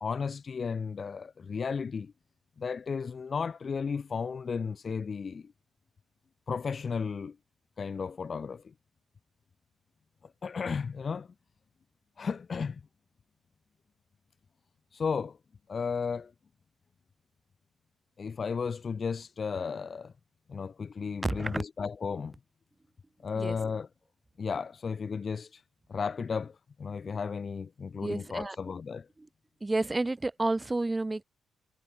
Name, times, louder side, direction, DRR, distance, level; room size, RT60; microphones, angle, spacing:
voice 1, 0.0-2.1 2.6-5.5 6.5-7.4 7.8-8.7 10.4-11.3 12.2-12.8 14.9-15.4 15.7-16.3 18.2-20.1 20.5-22.3 23.2-23.9 24.4-25.6 25.9-29.1, left 5 dB, 40° left, 0.5 m, -34 dB
voice 2, 21.2-21.6 23.4-23.6 28.0-28.6 29.6-31.2, right 2 dB, 15° right, 0.6 m, -30 dB
cardioid pair, 115°, 0 cm